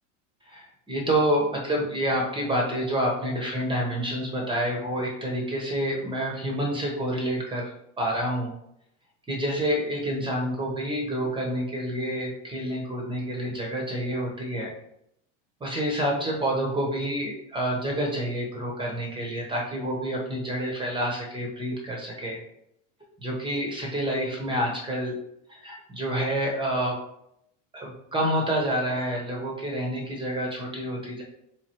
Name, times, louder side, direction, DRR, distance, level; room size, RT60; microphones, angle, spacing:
voice 1, 0.4-7.7 8.0-8.5 9.3-14.7 15.6-22.4 23.2-25.2 25.5-27.0 27.7-31.2, right 1 dB, 15° right, -1 dB, 0.9 m, -28 dB
3.4 x 3.2 x 4.4 m, 0.76 s
supercardioid pair, 130°, 38 cm